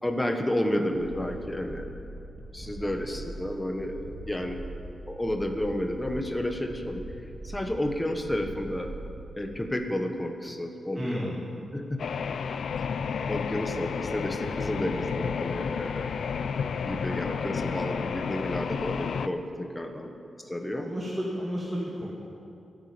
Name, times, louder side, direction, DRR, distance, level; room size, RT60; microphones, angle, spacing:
voice 1, 0.0-2.1 2.5-4.6 5.1-7.0 7.4-8.9 9.3-11.3 11.7-12.0 12.8-12.9 13.3-16.1 16.9-20.1 20.4-20.9, left 1 dB, 10° left, 4 dB, 1.4 m, -31 dB
sound 1, 0.9-9.4, right 1 dB, 50° right, 2.5 m, -42 dB
voice 2, 2.6-3.0 10.9-11.4 13.0-13.1 16.9-17.2 17.5-17.7 20.7-22.2, equal, 15° right, -4 dB, 2.3 m, -34 dB
sound 2, 12.0-19.3, left 6 dB, 70° left, 0.6 m, -31 dB
28.0 x 9.5 x 5.3 m, 2.6 s
wide cardioid pair, 110°, 0 cm